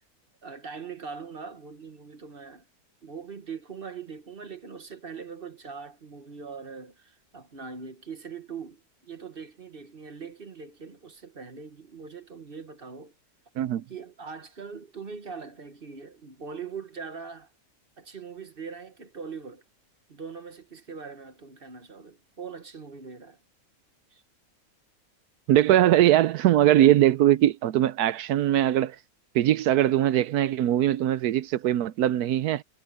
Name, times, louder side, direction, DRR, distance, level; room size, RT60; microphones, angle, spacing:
voice 1, 0.4-2.6 3.0-13.1 13.9-17.5 18.0-19.6 20.1-23.4 24.1-24.2, right 5 dB, 40° right, 1.3 m, -41 dB
voice 2, 25.5-29.0 29.3-32.6, right 12 dB, 80° right, 1.1 m, -21 dB
omnidirectional pair, 1.6 m